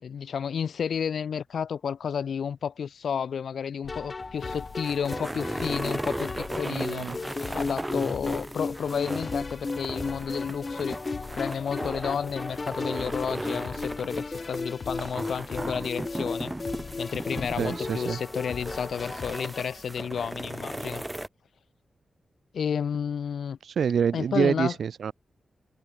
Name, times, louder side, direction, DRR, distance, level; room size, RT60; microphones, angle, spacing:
voice 1, 0.0-7.3 7.5-16.5 17.0-21.0 22.5-23.6 24.1-24.8, left 7 dB, 75° left, 1.0 m, -31 dB
sound 1, 3.8-19.4, left 6 dB, 50° left, 7.4 m, -45 dB
sound 2, 3.9-19.8, left 3 dB, 30° left, 0.7 m, -35 dB
sound 3, 4.2-21.3, right 1 dB, 10° right, 0.8 m, -37 dB
voice 2, 6.7-7.2 17.6-18.2 23.6-25.1, right 7 dB, 70° right, 0.4 m, -27 dB
wide cardioid pair, 155°, 0 cm